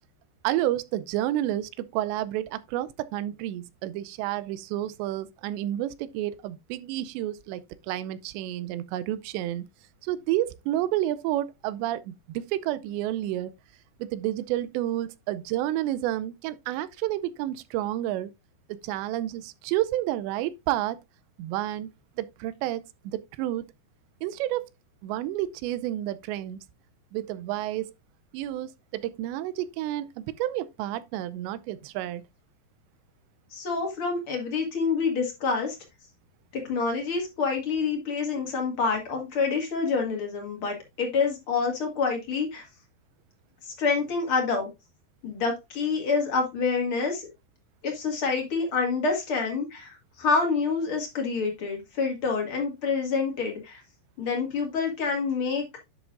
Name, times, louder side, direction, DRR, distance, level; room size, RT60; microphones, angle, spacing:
voice 1, 0.4-9.7 10.0-13.5 14.0-18.3 18.7-21.0 21.4-21.9 22.2-23.7 24.2-24.6 25.0-26.6 27.1-27.9 28.3-32.2, right 13 dB, 85° right, 2.9 m, -30 dB
voice 2, 33.5-35.8 36.5-42.6 43.7-44.7 45.2-47.3 47.8-53.8 54.2-55.8, left 4 dB, 40° left, 2.0 m, -27 dB
10.5 x 6.3 x 2.5 m
omnidirectional pair, 5.0 m